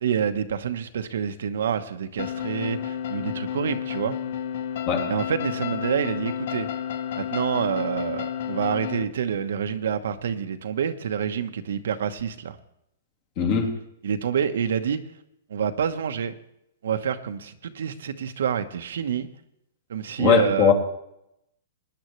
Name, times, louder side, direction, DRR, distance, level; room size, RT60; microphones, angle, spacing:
voice 1, 0.0-4.2 5.1-6.7 7.2-12.6 14.0-15.0 15.5-16.3 16.8-19.3 19.9-20.7, right 8 dB, 75° right, 1.1 m, -27 dB
sound 1, 2.2-9.0, left 9 dB, 55° left, 0.9 m, -31 dB
voice 2, 13.4-13.8 20.2-20.7, left 7 dB, 35° left, 2.4 m, -20 dB
19.0 x 10.5 x 3.2 m
hypercardioid pair, 160°, 0 cm